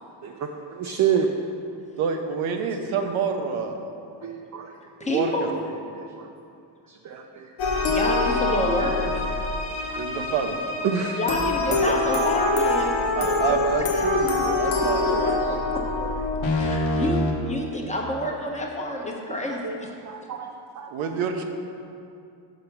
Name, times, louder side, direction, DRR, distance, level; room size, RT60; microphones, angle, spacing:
voice 1, 0.8-1.3 4.2-4.7 7.1-7.2 10.8-11.2 19.6-19.7 20.1-20.5 20.8-20.9, right 8 dB, 40° right, 3 dB, 0.4 m, -25 dB
voice 2, 2.0-3.9 5.0-5.5 10.0-10.6 11.7-11.9 13.1-15.4 20.9-21.4, right 5 dB, 85° right, 4 dB, 0.8 m, -27 dB
voice 3, 5.0-5.5 7.9-9.2 11.1-13.6 15.0-15.6 16.0-16.1 16.5-17.2 17.5-19.9, left 1 dB, 15° left, -1 dB, 0.9 m, -28 dB
sound 1, 7.6-17.3, left 2 dB, 75° left, 1.1 m, -25 dB
5.8 x 5.0 x 5.9 m, 2.5 s
cardioid pair, 110°, 47 cm